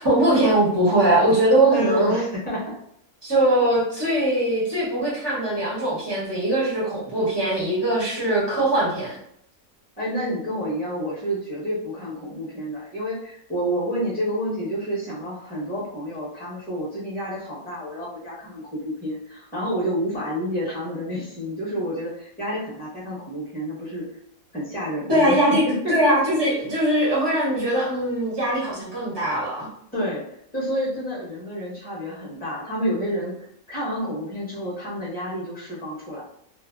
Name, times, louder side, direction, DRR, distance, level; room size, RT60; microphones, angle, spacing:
voice 1, 0.0-2.2 3.2-9.1 25.1-25.6 25.9-29.7, right 1 dB, 20° right, -7 dB, 0.7 m, -21 dB
voice 2, 1.7-2.7 10.0-24.0 24.5-26.0 26.5-26.6 29.9-30.2 30.5-33.4 33.7-36.2, equal, 10° left, -8 dB, 0.8 m, -29 dB
2.6 x 2.0 x 2.3 m, 0.70 s
omnidirectional pair, 1.5 m